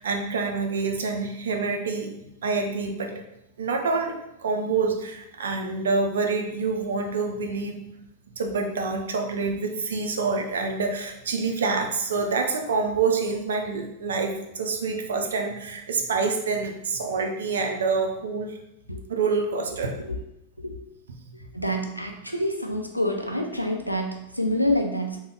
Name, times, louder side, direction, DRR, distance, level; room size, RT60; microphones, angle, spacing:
voice 1, 0.0-2.1 2.4-3.2 3.6-7.8 8.4-18.6 19.1-19.9, right 4 dB, 65° right, 4 dB, 0.5 m, -27 dB
voice 2, 19.7-20.2 20.6-20.8 21.3-25.2, left 1 dB, 90° left, 3 dB, 0.4 m, -27 dB
3.5 x 2.2 x 3.6 m, 0.85 s
figure-of-eight pair, 90°, 0 cm